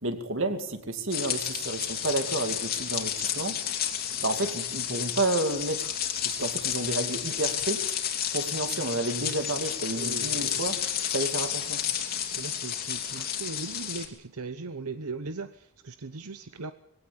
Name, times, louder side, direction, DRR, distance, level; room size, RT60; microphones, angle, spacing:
voice 1, 0.0-3.5 4.2-5.9 6.2-7.8 8.3-10.8 11.1-11.8 13.1-13.3, right 2 dB, 60° right, 7 dB, 2.5 m, -30 dB
sound 1, 1.1-14.1, left 9 dB, 45° left, 2.9 m, -31 dB
voice 2, 10.0-10.6 12.4-15.5 15.8-16.7, right 4 dB, 85° right, 11 dB, 0.9 m, -38 dB
21.0 x 17.0 x 8.8 m, 0.77 s
head